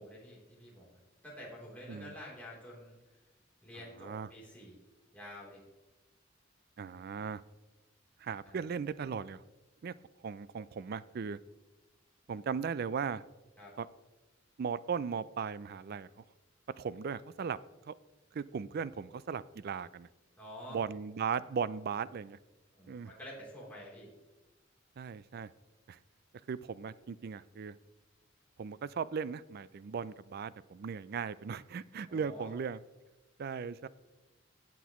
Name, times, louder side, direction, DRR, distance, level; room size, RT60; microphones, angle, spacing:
voice 1, 0.0-3.2 3.6-4.8 5.1-5.6 8.4-8.6 13.6-13.7 20.4-20.8 22.7-24.1 32.1-32.5, equal, 10° left, -6 dB, 3.3 m, -49 dB
voice 2, 6.8-7.4 8.2-9.4 9.8-9.9 10.2-11.4 12.3-13.2 13.8-13.9 14.6-16.1 16.8-17.6 17.9-18.0 18.3-20.1 20.7-22.4 22.9-23.1 25.0-25.5 25.9-26.0 26.5-27.7 28.6-32.8 33.4-33.9, right 6 dB, 55° right, 17 dB, 0.4 m, -37 dB
18.0 x 6.0 x 3.0 m, 1.1 s
head